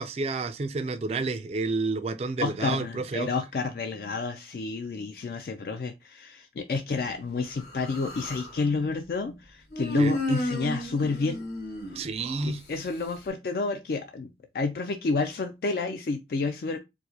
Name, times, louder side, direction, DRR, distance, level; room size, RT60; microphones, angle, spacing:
voice 1, 0.0-3.3 10.0-10.1 12.0-12.6, right 3 dB, 35° right, 0.3 m, -30 dB
voice 2, 2.4-11.4 12.4-16.8, left 4 dB, 55° left, 0.3 m, -30 dB
Human voice, 7.6-8.6 9.7-12.4, equal, 80° left, 1.9 m, -32 dB
4.5 x 2.1 x 2.7 m
head